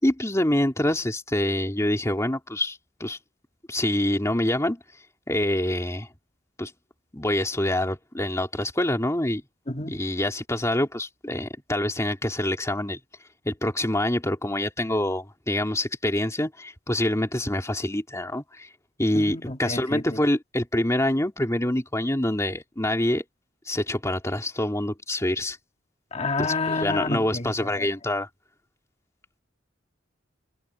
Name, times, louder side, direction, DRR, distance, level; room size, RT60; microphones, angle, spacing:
voice 1, 0.0-3.2 3.7-4.8 5.3-6.1 6.6-6.7 7.1-9.4 9.9-13.0 13.4-18.7 19.0-23.2 23.7-25.6 26.4-28.3, left 1 dB, 15° left, 3.0 m, -26 dB
voice 2, 9.7-10.0 19.1-20.2 26.1-27.5 27.8-27.9, left 3 dB, 35° left, 2.0 m, -29 dB
head